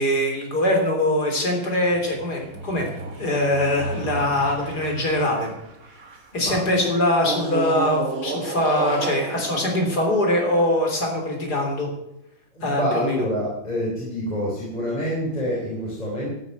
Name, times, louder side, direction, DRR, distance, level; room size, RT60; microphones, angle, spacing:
voice 1, 0.0-2.9 3.2-5.5 6.3-11.9 12.6-13.2, left 1 dB, 55° left, 1 dB, 4.1 m, -22 dB
sound 1, 1.7-6.4 7.2-10.8, right 3 dB, 45° right, 2.0 m, -33 dB
voice 2, 12.5-16.3, equal, 20° left, -5 dB, 4.0 m, -27 dB
12.0 x 9.7 x 8.2 m, 0.86 s
omnidirectional pair, 2.1 m